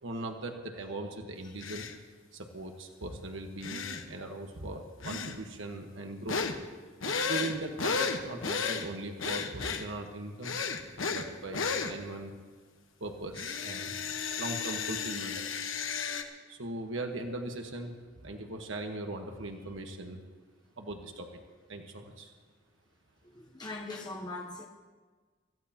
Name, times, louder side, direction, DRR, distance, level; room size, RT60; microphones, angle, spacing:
voice 1, 0.0-1.9 2.3-6.4 7.1-10.6 11.0-12.3 13.0-14.0 14.3-15.4 16.5-17.9 18.2-20.2 20.8-21.4 21.7-22.3, right 2 dB, 75° right, 1.3 m, -39 dB
sound 1, 1.6-1.9 3.6-4.0 5.0-5.4 6.3-6.6 7.0-8.9 9.2-9.8 10.4-11.3 11.5-11.9 13.3-16.2, left 5 dB, 80° left, 1.2 m, -33 dB
voice 2, 23.3-24.7, left 2 dB, 20° left, 0.9 m, -40 dB
25.5 x 15.0 x 2.9 m
head